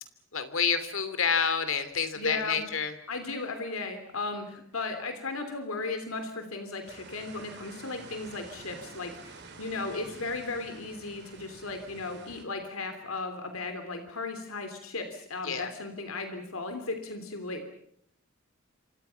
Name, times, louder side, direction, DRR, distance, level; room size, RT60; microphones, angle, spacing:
voice 1, 0.3-2.9 9.8-10.0 15.4-15.7, left 6 dB, 65° left, 12 dB, 2.9 m, -28 dB
voice 2, 2.2-2.6 3.1-17.7, left 3 dB, 85° left, 7 dB, 3.1 m, -36 dB
Distant seashore - Hyères, 6.8-12.4, right 4 dB, 55° right, 3.9 m, -49 dB
28.0 x 25.5 x 5.8 m, 0.70 s
head